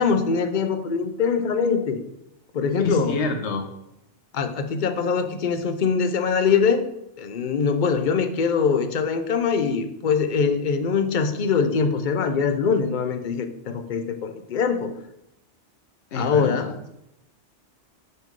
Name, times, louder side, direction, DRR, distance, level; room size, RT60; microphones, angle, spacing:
voice 1, 0.0-2.0 2.5-3.2 4.3-6.9 7.2-14.9 16.1-16.7, left 5 dB, 50° left, 8 dB, 0.7 m, -23 dB
voice 2, 2.8-3.7 16.1-16.9, left 2 dB, 70° left, 7 dB, 1.1 m, -28 dB
6.2 x 4.4 x 5.1 m, 0.83 s
omnidirectional pair, 1.2 m